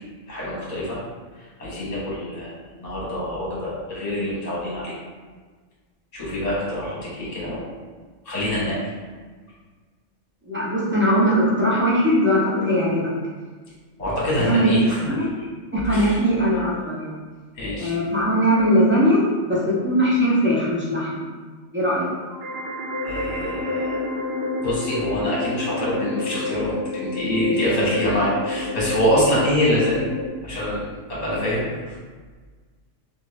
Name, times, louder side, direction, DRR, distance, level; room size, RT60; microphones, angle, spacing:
voice 1, 0.3-1.0 1.4-2.5 2.8-5.0 6.1-7.7 8.2-8.9 14.0-15.0 15.9-16.2 17.5-17.9 23.0-24.0 24.6-30.1 30.4-32.0, left 1 dB, 35° left, -7 dB, 1.1 m, -25 dB
voice 2, 10.5-13.1 14.4-14.7 15.1-15.5 15.7-17.2 17.8-21.2 21.7-22.1, equal, 20° right, -8 dB, 0.3 m, -20 dB
sound 1, 22.3-30.3, left 2 dB, 60° right, 0.7 m, -29 dB
2.6 x 2.4 x 3.2 m, 1.5 s
omnidirectional pair, 1.3 m